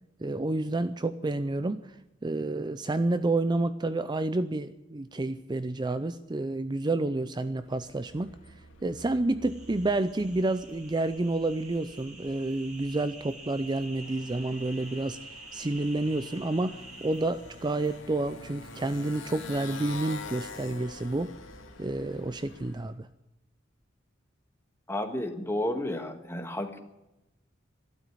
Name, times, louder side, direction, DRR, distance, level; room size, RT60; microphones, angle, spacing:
voice 1, 0.2-15.2 15.5-21.3 21.8-23.1, right 2 dB, 25° right, 12 dB, 0.5 m, -29 dB
Motorcycle, 7.5-22.9, left 3 dB, 90° left, 2.2 m, -47 dB
sound 1, 9.5-18.0, right 2 dB, 40° right, 4.6 m, -48 dB
voice 2, 24.9-26.8, left 1 dB, 15° left, 6 dB, 1.6 m, -32 dB
12.5 x 12.5 x 9.1 m, 0.93 s
head